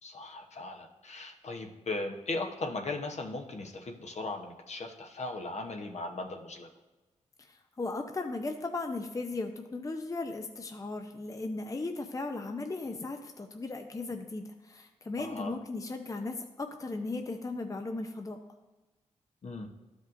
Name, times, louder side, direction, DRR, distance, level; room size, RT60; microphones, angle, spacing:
voice 1, 0.0-6.7 15.2-15.5 19.4-19.7, left 2 dB, 60° left, 3 dB, 1.0 m, -38 dB
voice 2, 7.4-18.4, left 3 dB, 25° left, 4 dB, 0.6 m, -37 dB
12.0 x 5.2 x 2.6 m, 1.1 s
cardioid pair, 55°, 13 cm